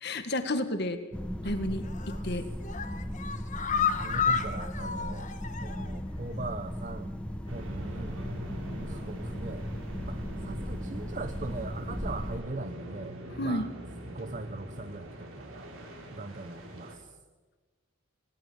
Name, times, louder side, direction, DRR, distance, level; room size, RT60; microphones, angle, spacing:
voice 1, 0.0-1.0 1.4-1.9 2.2-2.5 13.4-13.7, left 1 dB, 55° left, 8 dB, 1.8 m, -30 dB
sound 1, 1.1-12.4, equal, 5° left, 1.0 m, -37 dB
sound 2, 1.8-2.2 2.6-6.0 6.3-6.4 6.8-6.9, left 6 dB, 35° left, 1.3 m, -31 dB
voice 2, 2.1-2.5 4.0-5.3 5.6-7.1 7.5-8.2 8.6-9.6 10.1-13.7 14.1-15.7 16.1-17.2, right 3 dB, 35° right, 10 dB, 0.8 m, -40 dB
sound 3, 7.5-16.9, right 1 dB, 80° right, 4.9 m, -43 dB
19.0 x 18.0 x 8.7 m, 1.3 s
head